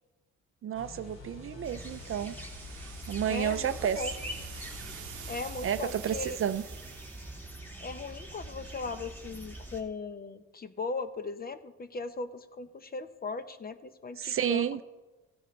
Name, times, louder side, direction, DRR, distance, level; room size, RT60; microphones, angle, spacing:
voice 1, 0.6-2.4 3.1-4.0 5.6-6.6 14.2-14.8, right 9 dB, 45° right, 12 dB, 0.5 m, -31 dB
sound 1, 0.7-5.8, left 4 dB, 65° left, 2.4 m, -48 dB
sound 2, 1.6-9.8, right 1 dB, 5° left, 1.8 m, -44 dB
sound 3, 1.8-7.5, right 12 dB, 75° right, 0.8 m, -48 dB
voice 2, 3.3-4.1 5.3-6.4 7.8-14.8, left 4 dB, 30° left, 11 dB, 0.7 m, -38 dB
15.5 x 9.7 x 3.2 m, 1.2 s
cardioid pair, 90°, 30 cm